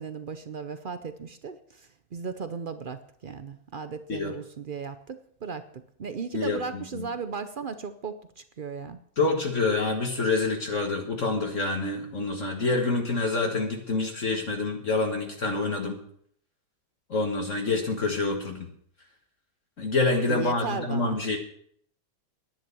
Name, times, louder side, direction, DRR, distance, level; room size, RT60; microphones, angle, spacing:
voice 1, 0.0-9.0 20.3-21.2, right 5 dB, 60° right, 11 dB, 0.5 m, -36 dB
voice 2, 6.3-7.1 9.2-16.0 17.1-18.7 19.8-21.4, left 3 dB, 45° left, 2 dB, 1.8 m, -27 dB
10.5 x 10.5 x 6.9 m, 0.65 s
omnidirectional pair, 1.8 m